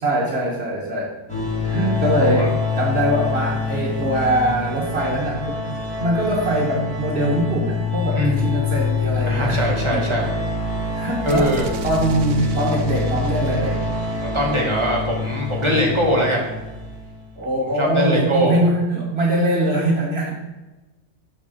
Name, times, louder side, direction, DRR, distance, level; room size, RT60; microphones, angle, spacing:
voice 1, 0.0-1.2 1.6-5.6 6.0-10.0 10.9-11.6 11.8-13.8 15.7-15.8 17.4-20.3, right 1 dB, 55° right, -2 dB, 1.5 m, -22 dB
sound 1, 1.3-17.2, left 4 dB, 5° left, 2.4 m, -25 dB
voice 2, 8.1-8.5 9.3-10.3 11.2-11.7 14.2-16.5 17.8-18.6, equal, 25° right, -3 dB, 1.8 m, -22 dB
sound 2, 11.2-15.1, right 6 dB, 75° right, 1.1 m, -36 dB
7.3 x 4.7 x 6.3 m, 1.1 s
omnidirectional pair, 1.3 m